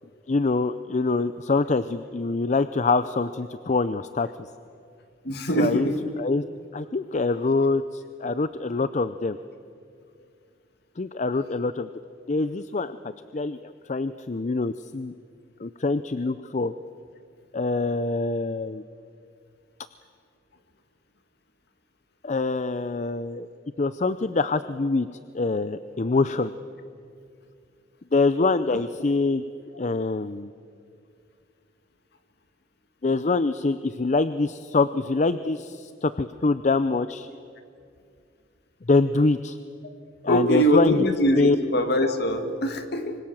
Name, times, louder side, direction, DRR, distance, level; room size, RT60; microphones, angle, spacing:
voice 1, 0.3-4.3 5.6-5.9 6.2-6.4 6.7-9.4 11.0-11.9 12.3-13.0 13.3-15.1 15.6-16.7 17.5-18.8 22.2-23.5 23.8-25.1 25.3-26.5 28.1-29.4 29.8-30.5 33.0-37.3 38.9-39.6 40.2-41.0 41.3-41.6, left 3 dB, 40° left, 13 dB, 0.5 m, -24 dB
voice 2, 5.2-6.0 40.3-43.2, equal, 55° left, 7 dB, 2.1 m, -23 dB
25.0 x 25.0 x 7.3 m, 2.4 s
head